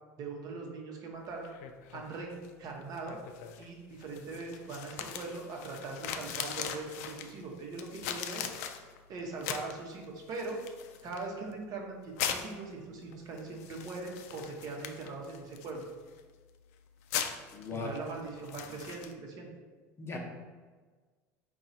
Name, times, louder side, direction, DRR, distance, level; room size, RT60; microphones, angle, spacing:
voice 1, 0.2-1.5 1.9-3.2 3.6-8.5 9.1-10.6 11.0-15.8 17.7-19.5, right 3 dB, 50° right, 0 dB, 0.8 m, -41 dB
sound 1, 1.2-19.1, left 8 dB, 75° left, 0.3 m, -42 dB
voice 2, 17.5-17.9 20.0-20.2, left 4 dB, 30° left, 0 dB, 0.8 m, -37 dB
3.8 x 2.3 x 4.0 m, 1.4 s
hypercardioid pair, 85°, 8 cm